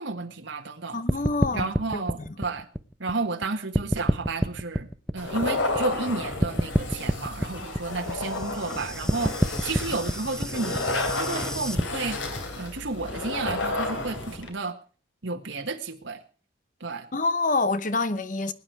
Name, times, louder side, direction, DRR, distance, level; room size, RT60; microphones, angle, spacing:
voice 1, 0.0-1.0 1.5-2.7 3.0-4.9 5.1-10.9 11.2-12.2 12.6-14.8 15.2-16.2 16.8-17.1, right 3 dB, 75° right, 1.6 m, -32 dB
voice 2, 0.9-2.3 17.1-18.5, left 3 dB, 40° left, 0.9 m, -27 dB
sound 1, 1.1-3.4 3.7-6.1 6.4-11.8, equal, 5° left, 0.6 m, -27 dB
sound 2, 5.2-14.5, left 2 dB, 80° left, 3.1 m, -32 dB
21.0 x 9.7 x 4.7 m
head